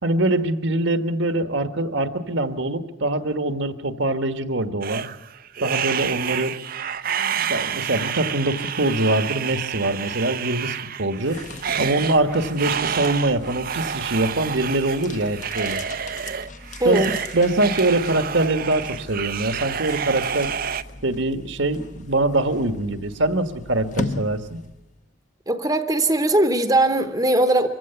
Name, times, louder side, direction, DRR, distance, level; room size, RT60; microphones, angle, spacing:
voice 1, 0.0-5.1 5.6-6.5 7.5-11.4 11.8-15.8 16.8-17.0 17.3-20.5 21.0-24.6, right 2 dB, 70° right, 9 dB, 1.4 m, -23 dB
sound 1, 4.8-20.8, right 7 dB, 45° right, 0.6 m, -29 dB
sound 2, 11.1-25.0, left 3 dB, 40° left, 0.9 m, -38 dB
voice 2, 16.8-17.1 25.5-27.7, right 1 dB, 20° right, 8 dB, 0.9 m, -20 dB
24.0 x 16.0 x 7.0 m, 1.0 s
head